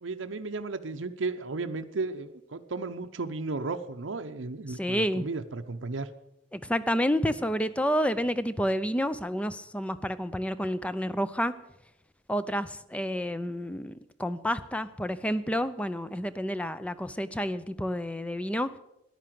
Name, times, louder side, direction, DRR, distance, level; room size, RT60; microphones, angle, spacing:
voice 1, 0.0-6.1, right 3 dB, 65° right, 8 dB, 0.7 m, -34 dB
voice 2, 4.8-5.3 6.5-11.5 12.3-18.7, equal, 5° left, 13 dB, 0.5 m, -29 dB
13.5 x 11.0 x 7.6 m, 0.86 s
head